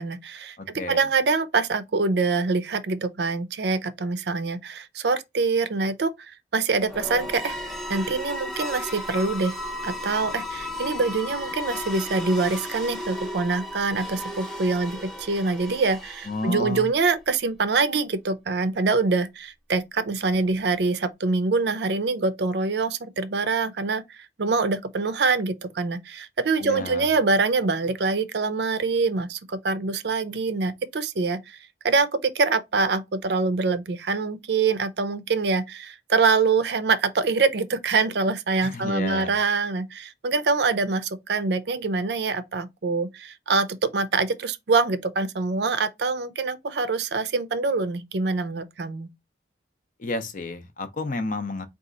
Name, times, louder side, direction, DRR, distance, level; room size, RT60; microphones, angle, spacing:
voice 1, 0.0-0.6 0.9-7.6 7.9-9.6 9.8-31.6 31.8-49.1, right 4 dB, 60° right, 0.5 m, -25 dB
voice 2, 0.6-1.1 16.2-16.9 26.6-27.1 38.6-39.3 50.0-51.7, left 2 dB, 45° left, 0.5 m, -31 dB
sound 1, 6.8-16.8, left 1 dB, ahead, 0.6 m, -34 dB
4.1 x 2.4 x 3.8 m
head